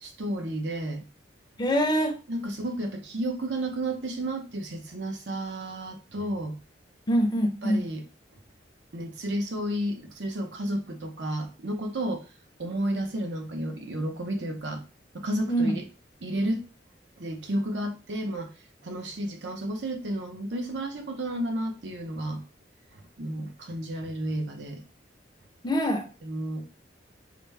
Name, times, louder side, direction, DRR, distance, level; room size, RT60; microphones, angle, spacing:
voice 1, 0.0-1.0 2.3-6.6 7.6-8.0 8.9-12.3 12.6-14.8 15.1-15.8 16.2-16.7 17.2-18.5 18.8-22.4 23.2-24.8 26.2-26.7, right 1 dB, 70° right, 0.7 m, -32 dB
voice 2, 1.6-2.2 7.1-7.8 15.5-15.8 25.6-26.0, equal, 25° left, 0.6 m, -24 dB
5.0 x 2.1 x 3.2 m
head